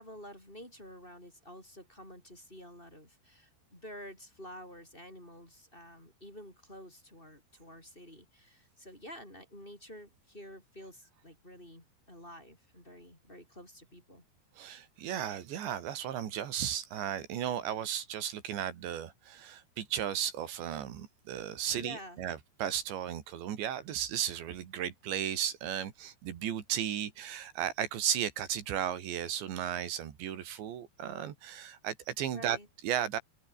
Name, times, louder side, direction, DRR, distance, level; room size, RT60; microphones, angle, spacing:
voice 1, 0.0-14.2 21.7-22.2 32.3-32.7, equal, 10° left, 6.7 m, -50 dB
voice 2, 14.6-32.6 32.8-33.2, right 10 dB, 80° right, 4.6 m, -35 dB
open air
omnidirectional pair, 5.1 m